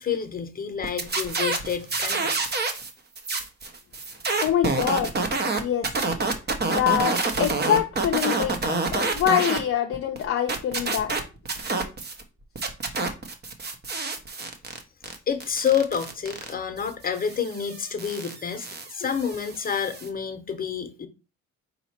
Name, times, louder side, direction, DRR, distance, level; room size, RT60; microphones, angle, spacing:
voice 1, 0.0-2.4 15.3-21.1, left 7 dB, 30° left, 0.9 m, -28 dB
sound 1, 0.8-2.9 3.2-9.6 9.9-12.2 12.6-20.1, right 3 dB, 35° right, 0.9 m, -28 dB
voice 2, 4.4-5.3 5.6-5.9 6.7-11.1 19.0-19.1, left 10 dB, 50° left, 0.5 m, -25 dB
4.0 x 2.8 x 4.3 m
cardioid pair, 90°, 30 cm